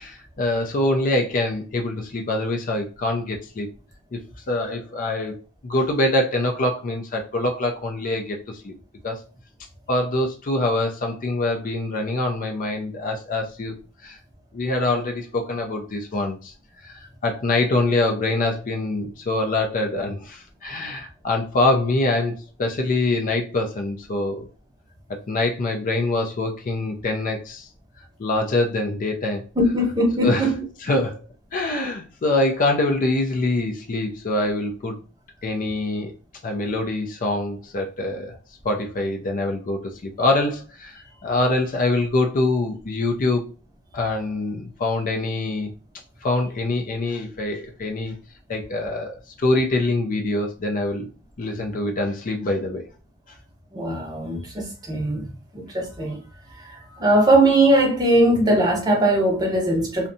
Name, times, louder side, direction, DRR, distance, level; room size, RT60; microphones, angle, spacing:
voice 1, 0.0-3.7 4.1-4.2 4.5-5.4 5.6-8.7 9.0-9.2 9.9-13.7 14.0-14.2 14.5-16.5 16.8-24.5 25.3-27.7 28.2-29.5 30.2-30.5 30.8-31.2 31.5-35.0 35.4-36.1 36.4-38.4 38.6-43.5 43.9-45.7 46.2-48.2 48.5-51.1 51.4-52.9, left 2 dB, 35° left, 0.4 m, -24 dB
voice 2, 29.6-30.6 53.7-56.2 56.6-60.1, right 1 dB, 15° right, 0.6 m, -20 dB
2.6 x 2.1 x 2.6 m
head